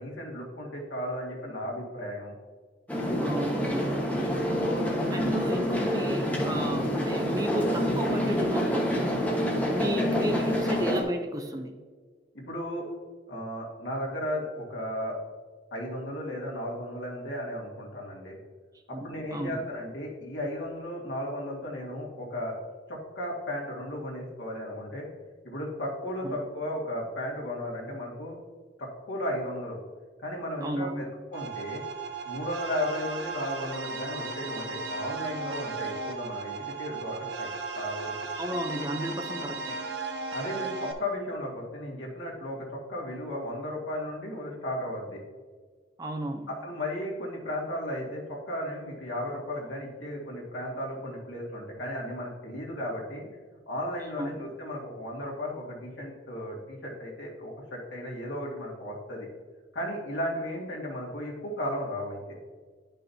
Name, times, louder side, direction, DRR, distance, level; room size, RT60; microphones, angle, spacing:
voice 1, 0.0-2.3 4.6-4.9 12.3-12.9 13.3-15.2 15.7-18.4 18.9-22.6 22.9-25.1 25.4-28.4 28.8-29.8 30.2-31.0 31.3-31.8 32.3-38.1 40.3-45.2 46.6-53.3 53.7-59.3 59.7-62.4, left 1 dB, 85° left, -3 dB, 2.0 m, -35 dB
sound 1, 2.9-11.0, equal, 10° left, 1.3 m, -27 dB
voice 2, 3.2-4.0 5.1-9.0 9.7-11.7 18.9-19.6 26.2-26.4 30.6-31.0 38.3-39.8 46.0-46.5 54.2-54.4, equal, 20° right, 5 dB, 0.5 m, -33 dB
sound 2, 31.3-40.9, right 4 dB, 70° right, 0.8 m, -36 dB
10.5 x 5.5 x 2.8 m, 1.5 s
head